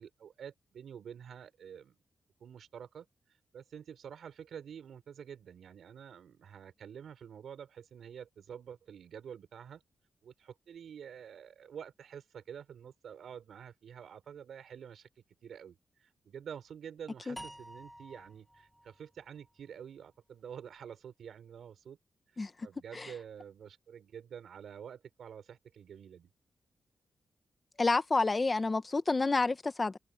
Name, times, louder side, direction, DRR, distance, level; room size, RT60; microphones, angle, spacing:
voice 1, 0.0-2.0 2.4-9.8 10.2-22.0 22.3-26.3, right 8 dB, 80° right, 5.4 m, -48 dB
sound 1, 17.4-20.5, equal, 5° right, 2.5 m, -51 dB
voice 2, 27.8-30.0, left 3 dB, 25° left, 1.4 m, -29 dB
wide cardioid pair, 115°, 0 cm